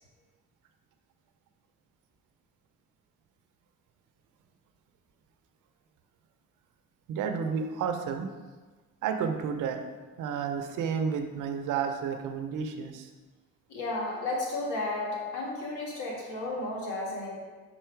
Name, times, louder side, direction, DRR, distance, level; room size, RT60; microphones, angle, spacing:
voice 1, 7.1-8.3 9.0-9.8 10.2-13.1, right 6 dB, 85° right, 6 dB, 0.7 m, -31 dB
voice 2, 13.7-17.4, left 2 dB, 80° left, -3 dB, 1.8 m, -33 dB
5.7 x 4.4 x 4.5 m, 1.3 s
cardioid pair, 90°, 30 cm